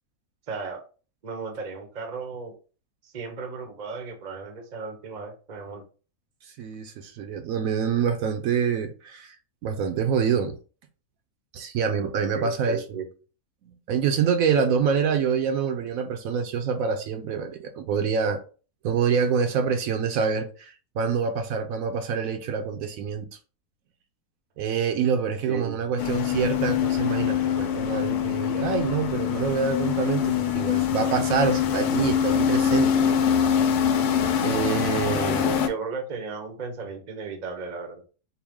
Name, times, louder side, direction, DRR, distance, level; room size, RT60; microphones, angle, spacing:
voice 1, 0.5-0.8 1.2-2.6 3.0-5.8 12.3-13.1 25.5-25.7 35.1-38.0, right 5 dB, 45° right, 0.6 m, -35 dB
voice 2, 6.6-9.3 9.6-10.6 11.5-12.8 13.9-18.4 18.8-23.3 24.6-33.2 34.4-35.5, right 6 dB, 70° right, 0.9 m, -26 dB
sound 1, 26.0-35.7, left 8 dB, 85° left, 1.1 m, -24 dB
4.6 x 2.1 x 3.5 m
omnidirectional pair, 1.6 m